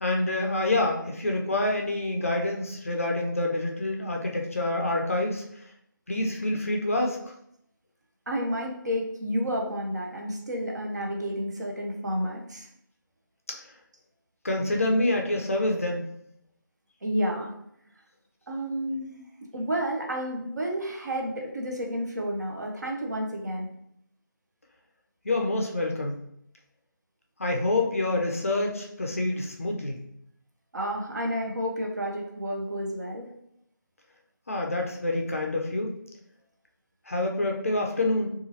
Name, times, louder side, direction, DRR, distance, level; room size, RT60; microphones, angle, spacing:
voice 1, 0.0-5.4 6.1-7.2 13.5-13.6 14.4-16.0 25.2-26.1 27.4-30.0 34.5-35.9 37.1-38.3, left 2 dB, 40° left, 1 dB, 0.4 m, -27 dB
voice 2, 8.3-12.7 17.0-17.5 18.5-19.2 19.5-23.7 30.7-33.3, equal, 50° right, 0 dB, 0.7 m, -30 dB
2.9 x 2.3 x 2.8 m, 0.72 s
figure-of-eight pair, 165°, 12 cm